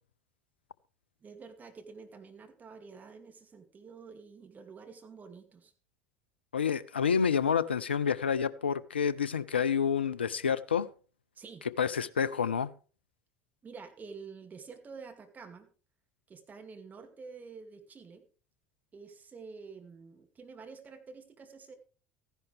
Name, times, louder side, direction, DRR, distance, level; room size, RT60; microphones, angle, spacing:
voice 1, 1.2-5.7 11.4-11.6 13.6-15.7 16.3-18.2 18.9-21.7, right 5 dB, 30° right, 2.3 m, -48 dB
voice 2, 6.5-10.9 11.8-12.7, left 7 dB, 85° left, 0.4 m, -28 dB
14.5 x 10.5 x 3.3 m
figure-of-eight pair, 65°, 6 cm